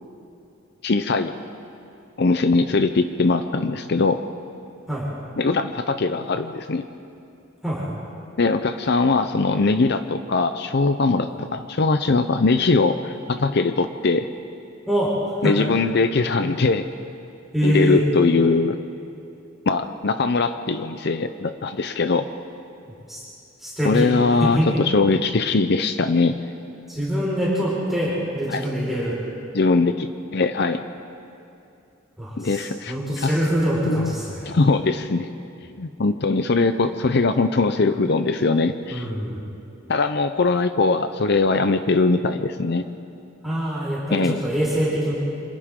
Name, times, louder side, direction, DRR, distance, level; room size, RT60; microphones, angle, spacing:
voice 1, 0.8-1.3 2.2-4.2 5.4-6.9 8.4-14.3 15.4-16.8 17.6-18.8 19.7-22.3 23.8-26.4 28.5-28.7 29.5-30.8 32.4-33.3 33.9-34.2 34.5-35.3 35.8-39.1 39.9-42.9 44.1-44.4, left 3 dB, 55° left, 9 dB, 0.6 m, -21 dB
voice 2, 17.5-18.0 23.1-23.2 23.6-24.1 24.4-24.7 26.9-29.1 32.2-34.5 38.9-39.4 43.4-45.1, equal, ahead, -8 dB, 4.8 m, -24 dB
28.5 x 26.0 x 3.7 m, 2.6 s
head